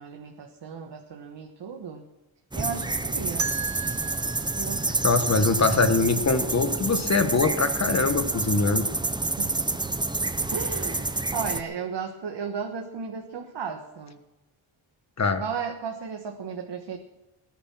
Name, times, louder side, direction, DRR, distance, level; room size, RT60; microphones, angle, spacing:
voice 1, 0.0-2.0 2.5-3.5 4.5-5.0 9.1-9.9 10.5-14.2 15.4-17.0, right 6 dB, 60° right, 2 dB, 1.5 m, -35 dB
sound 1, 2.5-11.6, right 2 dB, 10° right, 0.6 m, -28 dB
sound 2, 3.4-6.3, right 6 dB, 35° right, 0.9 m, -36 dB
voice 2, 5.0-8.9 15.2-15.4, left 4 dB, 35° left, 9 dB, 1.4 m, -23 dB
18.5 x 10.0 x 6.2 m, 0.96 s
cardioid pair, 110°, 48 cm